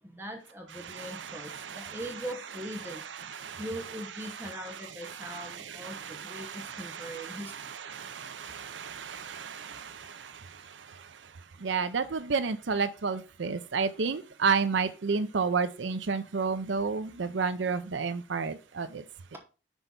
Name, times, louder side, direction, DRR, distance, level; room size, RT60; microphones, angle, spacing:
voice 1, 0.0-3.1 3.6-7.7, equal, 10° right, 0.9 m, -41 dB
voice 2, 0.8-2.0 3.2-3.7 4.4-11.3 11.6-19.0, right 5 dB, 85° right, 0.6 m, -32 dB
6.2 x 4.4 x 5.3 m
head